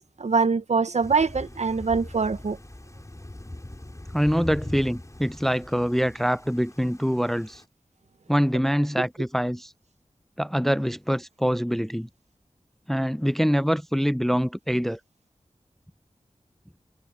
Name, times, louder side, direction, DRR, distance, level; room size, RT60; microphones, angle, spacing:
voice 1, 0.2-2.6, right 4 dB, 70° right, 0.8 m, -23 dB
Thunder / Rain, 1.0-7.7, left 1 dB, 25° left, 5.2 m, -41 dB
voice 2, 4.1-7.6 8.3-9.7 10.4-12.1 12.9-15.0, equal, ahead, 0.4 m, -24 dB
wide cardioid pair, 50°, 12 cm